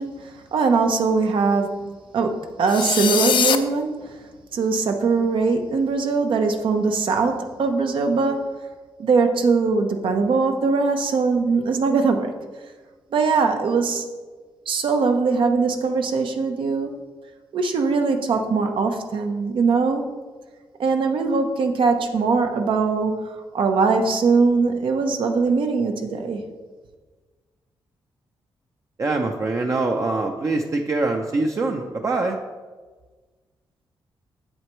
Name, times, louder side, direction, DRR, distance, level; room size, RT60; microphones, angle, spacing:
voice 1, 0.0-4.2 4.5-8.6 9.0-12.3 13.1-14.0 14.7-16.9 17.5-20.1 20.8-26.4, right 4 dB, 75° right, 5 dB, 0.8 m, -21 dB
sound 1, 2.7-3.6, left 7 dB, 65° left, 0.5 m, -21 dB
voice 2, 29.0-32.4, right 3 dB, 35° right, 2 dB, 0.6 m, -24 dB
7.8 x 7.7 x 3.1 m, 1.4 s
cardioid pair, 110°, 9 cm